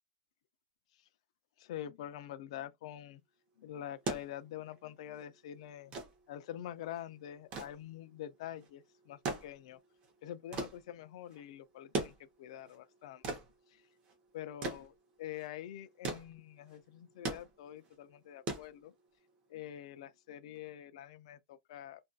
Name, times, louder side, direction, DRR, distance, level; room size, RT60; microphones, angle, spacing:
voice 1, 1.6-3.2 3.6-5.9 6.3-9.8 10.2-13.4 13.7-13.9 14.3-18.9 19.5-22.0, left 11 dB, 60° left, 0.4 m, -46 dB
sound 1, 3.8-19.3 20.6-20.7, right 3 dB, 25° right, 0.8 m, -42 dB
2.5 x 2.4 x 2.3 m
supercardioid pair, 170°, 4 cm